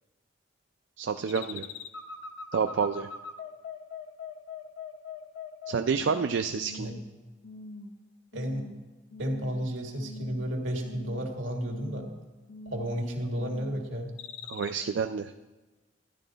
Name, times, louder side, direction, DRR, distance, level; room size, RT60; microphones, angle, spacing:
voice 1, 1.0-1.7 2.5-3.1 5.7-6.9 14.5-15.3, right 5 dB, 70° right, 7 dB, 0.4 m, -29 dB
sound 1, 1.3-6.3 6.6-7.1 7.4-8.0 8.3-8.7 9.1-9.7 10.0-10.5 10.8-11.3 11.7-12.1 12.5-13.0 13.4-13.8 14.2-14.7, left 4 dB, 65° left, 0.7 m, -42 dB
voice 2, 8.3-8.7 9.2-12.0 12.7-14.1, equal, 85° right, 2 dB, 1.7 m, -32 dB
12.0 x 10.5 x 4.0 m, 1.2 s
head